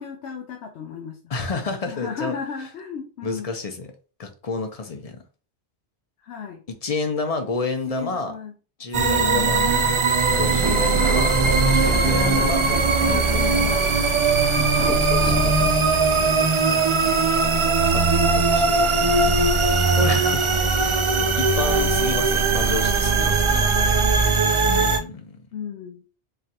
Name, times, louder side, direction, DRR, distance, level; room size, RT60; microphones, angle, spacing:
voice 1, 0.0-1.2 1.9-3.5 6.2-6.6 7.9-8.5 8.9-11.2 11.6-12.5 13.0-14.0 14.6-15.0 16.2-16.4 21.6-21.7 23.5-23.8 25.5-26.0, left 7 dB, 75° left, 0.9 m, -34 dB
voice 2, 1.3-2.4 3.2-3.9 4.2-5.2 6.7-8.3 8.8-9.6 10.4-11.3 11.7-12.6 12.9-13.8 14.8-15.8 17.9-18.9 19.9-20.5 20.8-21.1 21.4-23.7 24.6-25.4, left 4 dB, 40° left, 0.7 m, -30 dB
sound 1, 8.9-25.0, right 4 dB, 55° right, 0.3 m, -20 dB
sound 2, 10.3-15.5, right 2 dB, 25° right, 1.0 m, -32 dB
3.8 x 3.2 x 2.8 m
omnidirectional pair, 1.2 m